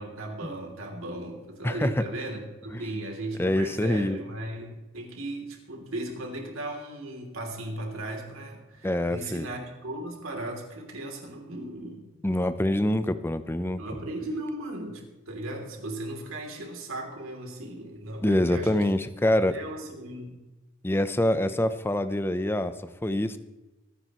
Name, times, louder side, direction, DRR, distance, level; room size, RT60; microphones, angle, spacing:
voice 1, 0.0-12.1 13.8-18.9 19.5-20.3, right 1 dB, 85° right, 2 dB, 3.1 m, -37 dB
voice 2, 3.4-4.2 8.8-9.5 12.2-13.8 18.2-19.6 20.8-22.7 23.0-23.4, left 1 dB, 10° left, 11 dB, 0.7 m, -25 dB
24.0 x 9.9 x 3.1 m, 1.1 s
head